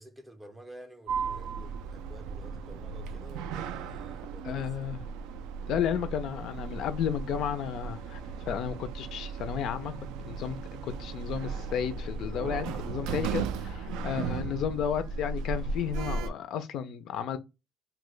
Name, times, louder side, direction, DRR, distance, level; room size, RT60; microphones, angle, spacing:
voice 1, 0.0-4.9, right 1 dB, 10° right, 0.4 m, -50 dB
Sliding door, 1.1-16.3, right 5 dB, 80° right, 0.3 m, -36 dB
voice 2, 4.4-5.0 5.7-8.2 8.5-9.9 10.3-17.4, left 8 dB, 50° left, 0.3 m, -33 dB
2.6 x 2.1 x 3.7 m
cardioid pair, 170°, 0 cm